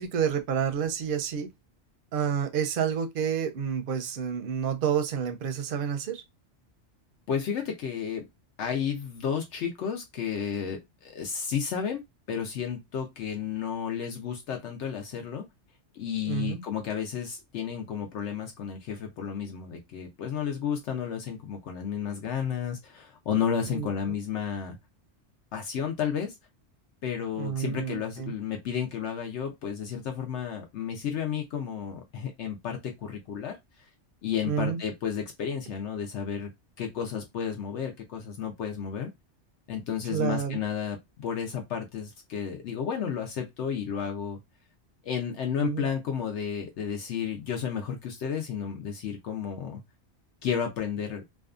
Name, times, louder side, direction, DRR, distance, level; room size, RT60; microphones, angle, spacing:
voice 1, 0.0-1.5 2.1-6.2 16.3-16.6 23.7-23.9 27.4-28.3 34.4-34.8 40.1-40.6 45.6-45.9, right 8 dB, 60° right, 0.6 m, -29 dB
voice 2, 7.3-8.2 8.6-12.0 12.3-15.4 15.9-24.8 25.5-26.4 27.0-33.6 34.2-36.5 36.8-39.1 39.7-44.4 45.0-49.8 50.4-51.2, left 7 dB, 75° left, 0.9 m, -32 dB
2.6 x 2.4 x 2.4 m
omnidirectional pair, 1.2 m